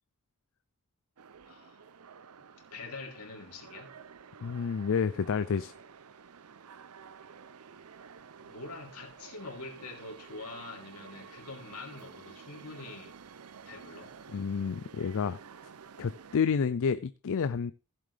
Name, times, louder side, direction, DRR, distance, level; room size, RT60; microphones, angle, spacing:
sound 1, 1.2-16.4, right 6 dB, 75° right, 0.6 m, -51 dB
voice 1, 1.5-1.8 2.7-4.0 8.4-13.1 13.7-14.1, left 3 dB, 80° left, 3.2 m, -45 dB
voice 2, 4.4-5.7 14.3-15.4 16.0-17.7, left 6 dB, 65° left, 0.4 m, -29 dB
15.5 x 7.5 x 3.4 m
head